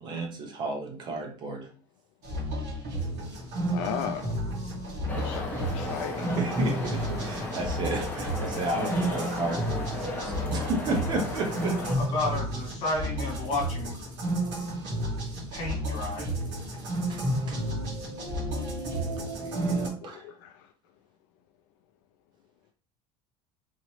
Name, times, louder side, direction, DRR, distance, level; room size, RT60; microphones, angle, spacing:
voice 1, 0.0-1.7 6.3-11.8 17.1-17.2 17.5-17.7 18.9-20.3, right 2 dB, 30° right, 0.7 m, -33 dB
sound 1, 2.2-19.9, right 1 dB, 55° right, 1.8 m, -32 dB
voice 2, 3.7-4.3 5.1-6.3 20.0-20.7, left 9 dB, 65° left, 0.4 m, -36 dB
voice 3, 4.4-6.3 12.1-14.1 15.5-16.3, left 2 dB, 40° left, 1.9 m, -34 dB
sound 2, 5.1-11.9, left 2 dB, 15° left, 0.9 m, -35 dB
4.0 x 2.9 x 3.1 m
cardioid pair, 180°, 14 cm